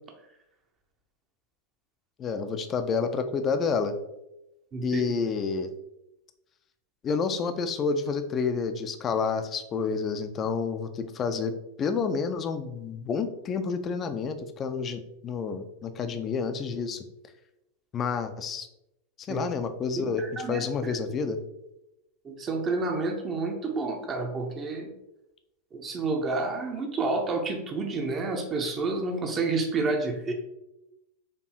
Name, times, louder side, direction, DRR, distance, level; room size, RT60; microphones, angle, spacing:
voice 1, 2.2-3.9 4.8-5.7 7.0-11.5 11.8-17.0 17.9-18.7 19.2-21.4, left 5 dB, 25° left, 9 dB, 0.4 m, -29 dB
voice 2, 4.7-5.0 19.3-19.4 20.0-21.0 22.2-24.9 25.7-30.3, right 3 dB, 25° right, 3 dB, 0.6 m, -29 dB
4.4 x 2.7 x 2.9 m, 0.89 s
figure-of-eight pair, 90°, 0 cm